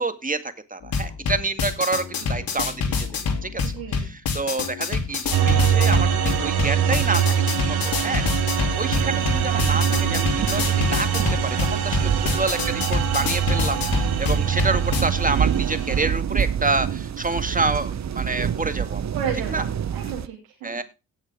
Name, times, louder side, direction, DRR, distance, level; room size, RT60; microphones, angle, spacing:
voice 1, 0.0-3.1 3.4-3.6 4.1-8.3 8.5-11.2 11.6-19.0 19.5-19.6 20.6-20.8, right 3 dB, 20° right, 9 dB, 2.1 m, -28 dB
sound 1, 0.8-15.0, left 5 dB, 65° left, 3.0 m, -27 dB
voice 2, 3.6-4.1 19.1-20.8, right 8 dB, 90° right, -2 dB, 3.0 m, -33 dB
sound 2, 5.3-16.1, right 8 dB, 70° right, 2.0 m, -23 dB
sound 3, 8.7-20.3, right 8 dB, 45° right, 0.9 m, -28 dB
17.5 x 6.6 x 3.6 m, 0.27 s
hypercardioid pair, 45°, 38 cm